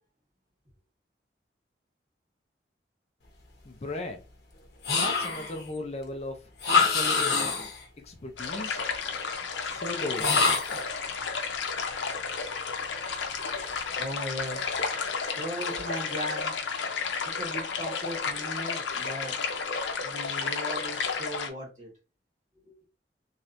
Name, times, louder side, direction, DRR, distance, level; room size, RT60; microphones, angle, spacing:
voice 1, 3.6-4.2 5.0-6.4 6.9-7.5 8.0-8.8 9.6-10.3, left 2 dB, 35° left, 3 dB, 0.4 m, -36 dB
sound 1, 4.8-5.6 6.6-7.8 10.2-10.9, left 4 dB, 60° left, 0.9 m, -25 dB
sound 2, 8.4-21.5, left 5 dB, 85° left, 0.6 m, -32 dB
voice 2, 14.0-14.7 15.4-16.5 17.2-19.3 20.0-21.9 22.6-22.7, equal, 40° right, -2 dB, 1.6 m, -37 dB
3.1 x 2.9 x 2.5 m, 0.30 s
head